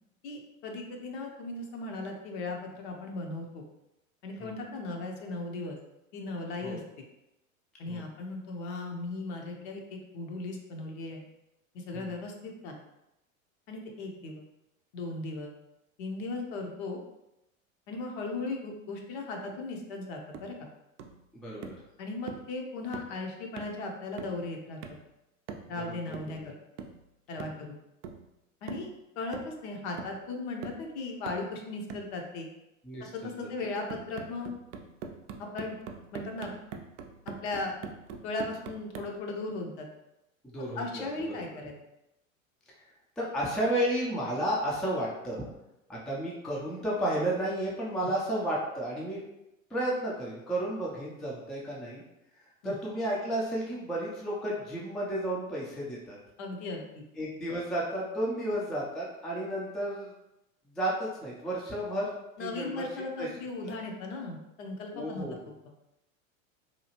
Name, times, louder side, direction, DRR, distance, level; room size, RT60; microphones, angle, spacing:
voice 1, 0.2-3.6 4.2-5.8 6.1-6.8 7.8-11.2 11.7-12.8 13.7-14.4 14.9-15.5 16.0-17.0 17.9-20.7 22.0-24.8 25.7-26.4 27.3-27.8 28.6-28.9 29.2-32.5 33.0-34.5 35.4-35.7 36.1-36.5 37.3-37.8 38.2-39.9 40.8-41.7 48.0-48.1 52.6-52.8 56.4-57.0 62.4-65.3, left 2 dB, 55° left, 2 dB, 0.7 m, -37 dB
sound 1, 20.3-20.6 21.0-21.2 21.6-21.9 22.3-22.5 22.9-23.2 23.6-23.8 24.2-24.5 24.8-25.1 25.5-25.8 26.1-26.4 26.8-27.0 27.4-27.6 28.0-28.3 28.7-28.9 29.3-29.7 30.0-30.2 30.6-30.9 31.3-31.5 31.9-32.1 33.9-39.2, right 6 dB, 60° right, 0.5 m, -43 dB
voice 2, 21.3-21.8 25.8-26.0 26.2-26.5 27.4-27.5 32.8-33.1 40.5-41.1 41.3-41.4 43.2-45.5 45.9-49.2 49.7-52.0 52.6-56.2 57.2-60.1 60.8-62.1 62.4-62.9 63.2-63.3 63.6-63.7 64.9-65.3, right 1 dB, ahead, -5 dB, 0.4 m, -32 dB
2.8 x 2.3 x 2.9 m, 0.90 s
hypercardioid pair, 90°, 40 cm